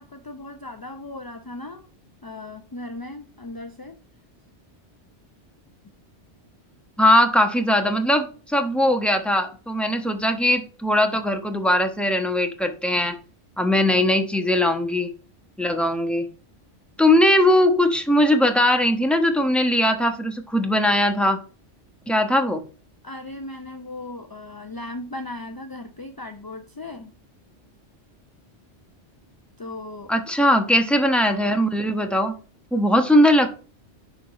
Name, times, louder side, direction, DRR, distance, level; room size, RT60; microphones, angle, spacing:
voice 1, 0.0-1.9 2.2-4.0 23.0-27.1 29.6-30.1, left 2 dB, 30° left, 6 dB, 0.5 m, -37 dB
voice 2, 7.0-13.1 13.6-15.1 15.6-16.3 17.0-21.4 22.1-22.6 30.1-32.3 32.7-33.5, left 1 dB, ahead, 5 dB, 1.0 m, -20 dB
11.0 x 3.9 x 4.8 m, 0.38 s
omnidirectional pair, 1.2 m